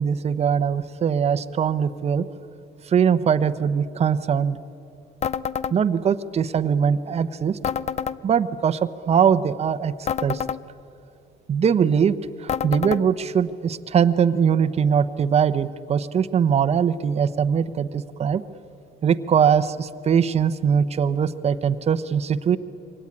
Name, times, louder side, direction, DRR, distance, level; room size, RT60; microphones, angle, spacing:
voice 1, 0.0-2.3 2.9-4.6 5.7-7.6 8.2-9.9 10.2-10.4 11.5-18.4 19.0-22.6, right 7 dB, 40° right, 12 dB, 0.9 m, -21 dB
sound 1, 5.2-5.8 7.6-8.2 10.1-10.6 12.5-13.0, left 8 dB, 40° left, 0.6 m, -27 dB
24.0 x 18.0 x 9.8 m, 2.7 s
cardioid pair, 110°, 17 cm